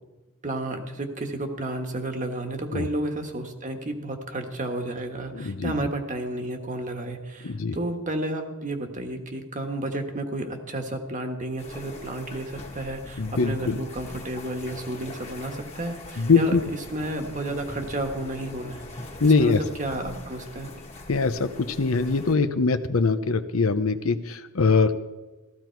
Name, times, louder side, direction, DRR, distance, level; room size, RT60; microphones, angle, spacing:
voice 1, 0.4-20.7, right 1 dB, 35° right, 5 dB, 1.4 m, -32 dB
voice 2, 5.3-5.7 7.4-7.8 13.2-13.8 16.2-16.6 19.2-19.6 21.1-25.0, left 4 dB, 80° left, 11 dB, 0.8 m, -22 dB
sound 1, 11.6-22.4, left 2 dB, 30° left, 1.7 m, -42 dB
15.5 x 14.0 x 4.6 m, 1.1 s
head